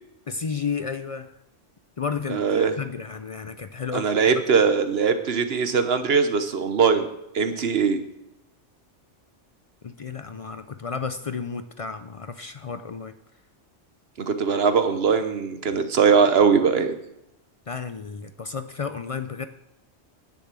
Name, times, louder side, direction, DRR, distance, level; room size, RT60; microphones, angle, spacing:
voice 1, 0.3-1.3 2.0-4.1 9.8-13.1 17.7-19.5, left 5 dB, 55° left, 10 dB, 0.4 m, -32 dB
voice 2, 2.3-2.7 3.9-7.1 7.3-8.0 14.2-17.0, right 5 dB, 60° right, 9 dB, 1.2 m, -21 dB
10.0 x 7.1 x 7.4 m, 0.84 s
omnidirectional pair, 1.2 m